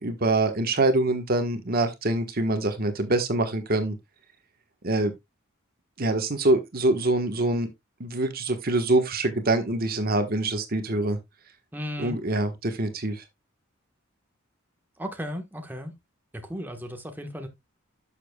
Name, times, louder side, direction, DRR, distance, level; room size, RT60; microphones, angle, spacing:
voice 1, 0.0-4.0 4.8-5.1 6.0-7.7 8.0-11.2 12.0-13.2, right 2 dB, 45° right, 1.3 m, -25 dB
voice 2, 11.7-12.2 15.0-15.9 16.4-17.5, equal, 10° right, 1.2 m, -35 dB
11.5 x 7.0 x 2.3 m
head